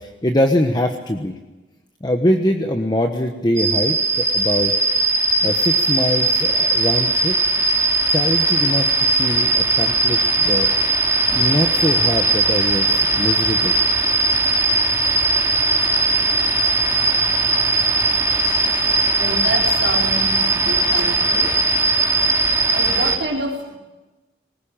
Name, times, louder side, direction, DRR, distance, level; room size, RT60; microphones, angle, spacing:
voice 1, 0.0-1.3 2.0-4.7 5.4-7.3 8.1-10.7 11.3-13.7, left 1 dB, 25° left, 4 dB, 1.2 m, -22 dB
sound 1, 3.6-23.2, right 2 dB, 15° right, 2.6 m, -19 dB
voice 2, 15.7-23.8, right 2 dB, 75° right, -2 dB, 4.3 m, -31 dB
20.5 x 19.0 x 9.0 m, 1.1 s
head